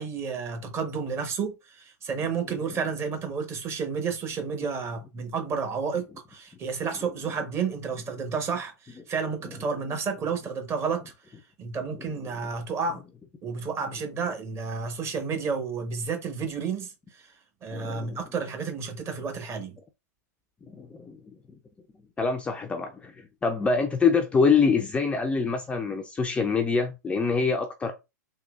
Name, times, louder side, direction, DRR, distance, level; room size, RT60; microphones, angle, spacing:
voice 1, 0.0-11.1 11.6-13.0 13.4-17.2 17.6-19.8, right 5 dB, 30° right, 1.0 m, -31 dB
voice 2, 17.7-18.2 20.7-21.3 22.2-27.9, left 5 dB, 10° left, 0.4 m, -25 dB
3.7 x 2.8 x 2.4 m
hypercardioid pair, 105°, 9 cm